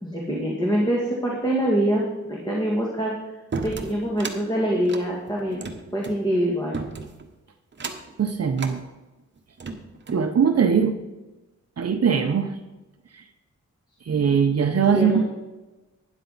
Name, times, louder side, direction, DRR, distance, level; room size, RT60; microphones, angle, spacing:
voice 1, 0.0-3.1 3.6-6.8 14.9-15.3, equal, 15° left, -3 dB, 1.8 m, -25 dB
sound 1, 3.5-4.4 4.8-6.2 6.7-7.2 7.7-8.1 8.5-8.8 9.4-10.3, right 4 dB, 40° right, 1.1 m, -33 dB
voice 2, 8.2-8.8 10.1-10.9 11.8-12.5 13.1-13.2 14.1-15.2, right 7 dB, 55° right, 6 dB, 0.8 m, -21 dB
12.5 x 9.9 x 4.0 m, 1.1 s
wide cardioid pair, 160°, 29 cm